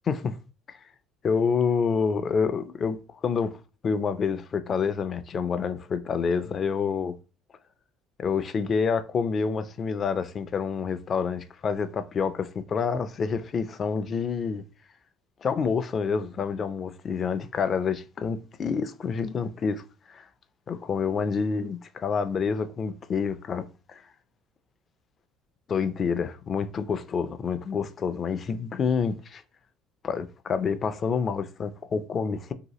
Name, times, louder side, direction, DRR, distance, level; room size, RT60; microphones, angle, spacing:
voice 1, 0.1-0.4 0.7-0.8 1.2-3.6 3.8-7.2 8.2-14.6 15.4-19.8 20.1-20.2 20.7-24.0 25.7-29.4 30.0-32.5, left 5 dB, 45° left, 0.4 m, -28 dB
2.8 x 2.2 x 3.0 m
hypercardioid pair, 70°, 0 cm